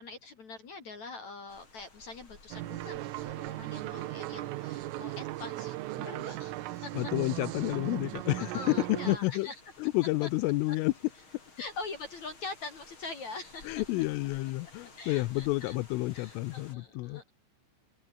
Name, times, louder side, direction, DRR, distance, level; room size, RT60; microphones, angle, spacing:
voice 1, 0.0-7.0 8.4-9.5 10.2-10.3 11.6-13.8 15.0-15.8 16.1-17.3, left 3 dB, 40° left, 3.3 m, -43 dB
sound 1, 1.5-16.8, left 3 dB, 25° left, 5.5 m, -56 dB
sound 2, 2.5-9.2, right 17 dB, 80° right, 3.6 m, -37 dB
voice 2, 6.9-8.8 9.1-9.5 9.8-10.9 13.7-17.2, left 20 dB, 80° left, 3.4 m, -30 dB
omnidirectional pair, 5.8 m